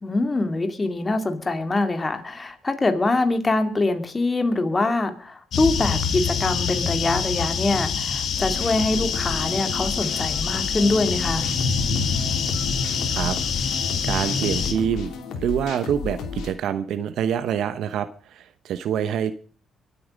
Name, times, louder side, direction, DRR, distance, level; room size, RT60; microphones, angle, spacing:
voice 1, 0.0-11.5, left 2 dB, 25° left, 7 dB, 2.4 m, -24 dB
sound 1, 5.5-14.7, left 6 dB, 65° left, 2.7 m, -25 dB
sound 2, 8.4-16.5, left 5 dB, 85° left, 3.3 m, -33 dB
voice 2, 14.0-15.1 15.4-19.3, right 9 dB, 75° right, 11 dB, 1.0 m, -26 dB
23.5 x 8.6 x 5.3 m, 0.41 s
cardioid pair, 90°, 0 cm